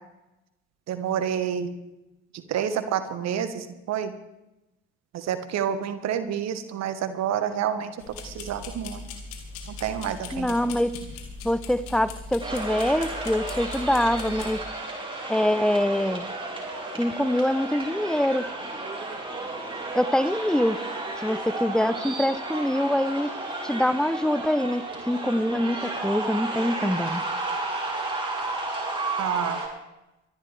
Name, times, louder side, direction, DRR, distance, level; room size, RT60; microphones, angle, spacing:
voice 1, 0.9-1.7 2.3-4.1 5.1-9.1 9.7-10.6 29.2-29.6, right 9 dB, 50° right, 10 dB, 1.6 m, -29 dB
sound 1, 8.0-14.6, left 3 dB, 70° left, 2.3 m, -39 dB
voice 2, 10.3-10.9 11.4-14.6 15.3-16.3 16.9-18.5 19.9-20.8 21.2-23.3 23.6-27.2, left 1 dB, ahead, 15 dB, 0.8 m, -24 dB
sound 2, 12.4-29.7, right 2 dB, 15° right, 5.2 m, -33 dB
24.0 x 11.5 x 3.5 m, 0.93 s
figure-of-eight pair, 50°, 33 cm